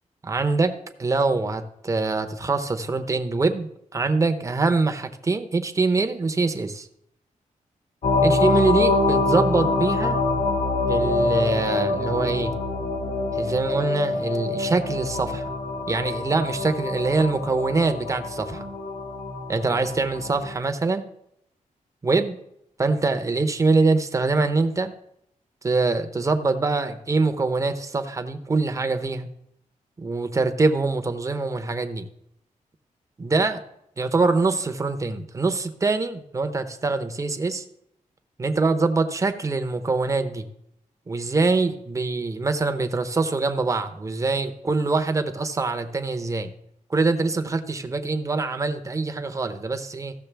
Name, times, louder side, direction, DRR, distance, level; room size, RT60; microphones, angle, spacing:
voice 1, 0.2-6.9 8.2-10.2 10.9-12.5 13.3-15.5 15.9-18.6 19.5-21.0 22.0-22.4 22.8-24.9 25.6-29.3 30.0-32.1 33.2-33.6 34.0-37.6 38.4-40.4 41.1-46.5 46.9-50.1, right 3 dB, 25° right, 7 dB, 0.8 m, -24 dB
sound 1, 8.0-20.6, left 3 dB, 60° left, 2.0 m, -25 dB
15.0 x 6.6 x 3.4 m, 0.76 s
wide cardioid pair, 130°, 14 cm